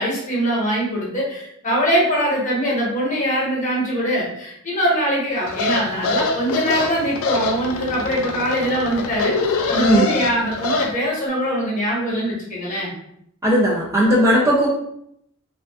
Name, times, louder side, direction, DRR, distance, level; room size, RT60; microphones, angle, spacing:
voice 1, 0.0-12.9, equal, 35° left, -5 dB, 0.9 m, -22 dB
sound 1, 5.5-10.9, left 4 dB, 75° left, 0.3 m, -25 dB
voice 2, 9.8-10.1 13.4-14.7, equal, 15° right, -4 dB, 0.3 m, -16 dB
2.5 x 2.2 x 2.3 m, 0.72 s
head